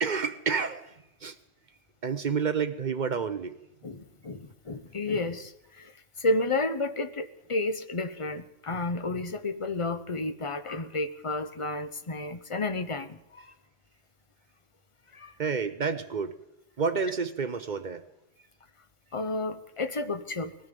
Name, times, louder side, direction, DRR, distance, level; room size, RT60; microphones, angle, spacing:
voice 1, 0.0-0.9 1.2-1.4 2.0-3.5 15.4-16.3 16.8-18.0, right 5 dB, 45° right, 0.7 m, -29 dB
voice 2, 3.8-5.9 6.2-13.5 15.1-15.3 19.1-20.6, left 2 dB, 30° left, 0.8 m, -31 dB
20.0 x 13.0 x 5.2 m
omnidirectional pair, 1.2 m